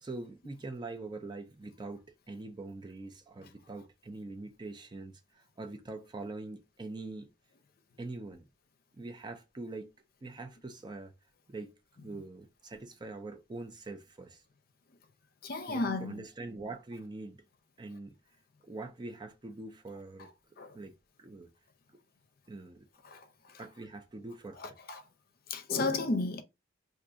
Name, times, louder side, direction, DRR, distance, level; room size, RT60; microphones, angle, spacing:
voice 1, 0.0-7.3 8.0-8.4 8.9-9.9 10.2-11.1 11.5-11.7 12.0-14.4 15.7-17.4 17.8-18.2 18.6-20.3 20.7-21.5 21.9-22.0 22.5-22.9 23.6-24.8, right 2 dB, 25° right, 0.4 m, -43 dB
voice 2, 15.4-16.2 20.6-20.7 23.0-23.2 24.6-25.0 25.5-26.4, left 3 dB, 50° left, 0.6 m, -33 dB
2.6 x 2.6 x 3.7 m
head